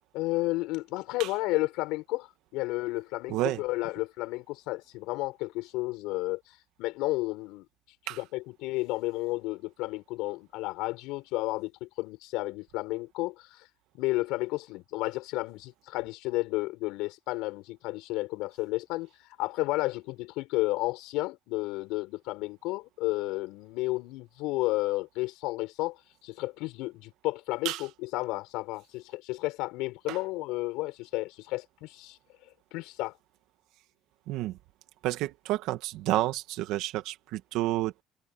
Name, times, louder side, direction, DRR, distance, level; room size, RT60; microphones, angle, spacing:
voice 1, 0.1-2.3 2.5-6.4 6.8-7.7 8.1-13.6 13.9-19.1 19.4-26.0 26.2-32.2 32.7-33.2, left 20 dB, 85° left, 5.9 m, -32 dB
voice 2, 3.3-3.6 8.1-8.2 27.6-27.8 30.1-30.2 34.3-34.6 35.0-38.0, right 16 dB, 75° right, 2.1 m, -30 dB
cardioid pair, 125°, 0 cm